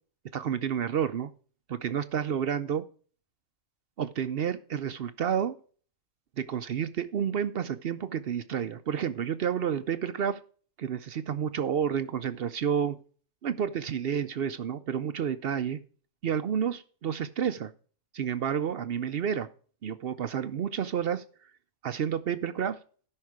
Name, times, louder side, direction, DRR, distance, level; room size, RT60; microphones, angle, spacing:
voice 1, 0.3-1.3 1.7-2.8 4.0-5.6 6.4-10.4 10.8-13.0 13.4-15.8 16.2-17.7 18.1-19.5 19.8-21.5 21.8-22.8, right 8 dB, 60° right, 13 dB, 0.7 m, -30 dB
13.0 x 5.7 x 4.8 m, 0.42 s
omnidirectional pair, 1.4 m